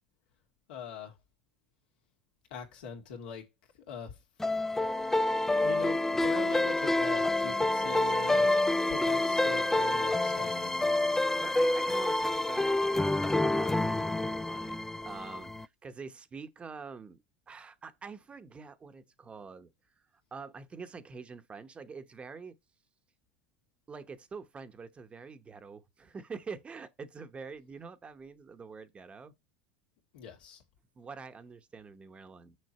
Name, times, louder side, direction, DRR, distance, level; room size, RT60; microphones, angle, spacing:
voice 1, 0.7-1.1 2.5-3.4 3.9-4.1 5.6-8.6 8.9-10.8 30.1-30.6, left 6 dB, 85° left, 2.4 m, -41 dB
sound 1, 4.4-15.6, left 2 dB, 10° left, 0.4 m, -28 dB
voice 2, 11.0-17.2 17.5-19.7 20.3-22.6 23.9-29.3 31.0-32.6, right 5 dB, 25° right, 0.9 m, -46 dB
6.5 x 6.3 x 4.2 m
supercardioid pair, 110°, 5 cm